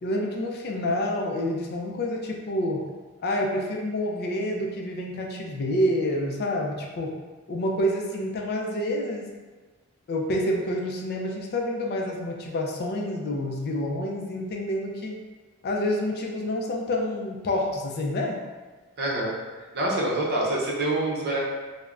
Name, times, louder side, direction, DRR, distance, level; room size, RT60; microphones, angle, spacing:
voice 1, 0.0-2.9 3.2-7.2 7.5-9.3 10.1-15.2 15.6-18.4, left 1 dB, 45° left, 0 dB, 0.4 m, -28 dB
voice 2, 19.0-19.3 19.7-21.4, right 1 dB, 50° right, -4 dB, 0.6 m, -26 dB
3.3 x 2.1 x 2.4 m, 1.3 s
head